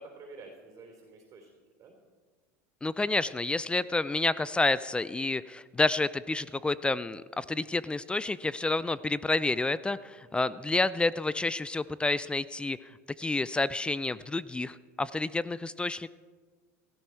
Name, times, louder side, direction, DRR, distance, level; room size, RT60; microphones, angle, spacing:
voice 1, 0.0-1.5 1.8-1.9 4.4-4.5 10.2-10.5, right 3 dB, 40° right, 1 dB, 3.4 m, -50 dB
voice 2, 2.8-12.8 13.2-16.1, left 2 dB, 10° left, 18 dB, 0.4 m, -29 dB
16.5 x 14.0 x 4.5 m, 1.5 s
hypercardioid pair, 95°, 8 cm